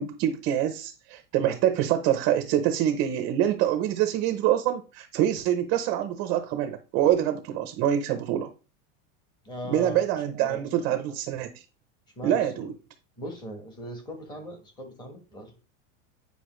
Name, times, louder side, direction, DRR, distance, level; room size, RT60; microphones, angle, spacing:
voice 1, 0.0-8.5 9.7-11.6 12.2-12.7, right 11 dB, 30° right, 0.6 m, -25 dB
voice 2, 9.4-10.0 10.4-10.6 10.9-11.0 12.1-12.7 13.2-15.6, equal, 10° left, 1.2 m, -39 dB
9.7 x 5.3 x 3.1 m
supercardioid pair, 175°, 39 cm